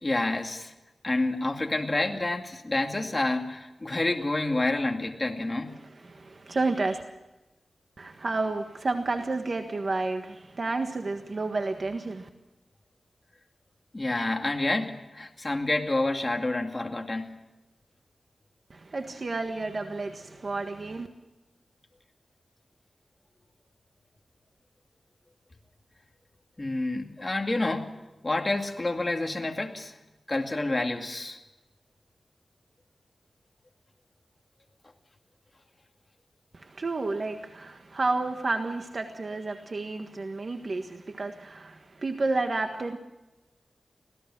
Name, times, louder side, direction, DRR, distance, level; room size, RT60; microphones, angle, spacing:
voice 1, 0.0-0.7 1.0-5.8 13.9-17.3 26.6-27.9 28.2-29.9 30.3-31.4, left 2 dB, 25° left, 3 dB, 2.4 m, -28 dB
voice 2, 6.0-7.0 8.0-12.3 18.7-21.1 36.5-43.0, right 3 dB, 50° right, 5 dB, 1.5 m, -31 dB
25.0 x 17.5 x 6.2 m, 1.0 s
wide cardioid pair, 105°, 0 cm